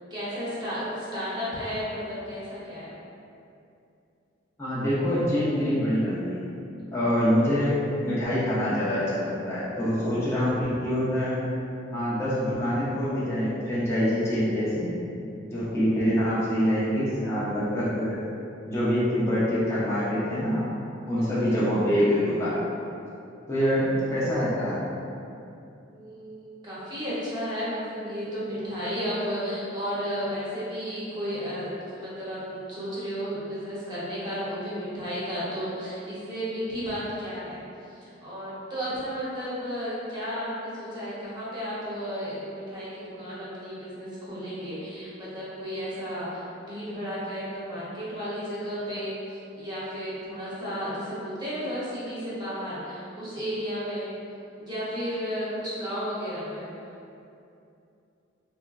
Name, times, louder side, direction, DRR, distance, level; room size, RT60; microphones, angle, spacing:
voice 1, 0.1-2.9 21.2-21.6 25.9-37.6 37.9-54.1 54.6-56.6, equal, 25° right, -10 dB, 0.9 m, -33 dB
voice 2, 4.6-6.5 6.9-11.4 11.9-14.9 15.5-18.2 18.6-20.8 21.1-22.6 23.5-24.9, equal, 15° left, -11 dB, 0.6 m, -25 dB
3.5 x 2.1 x 2.4 m, 2.6 s
head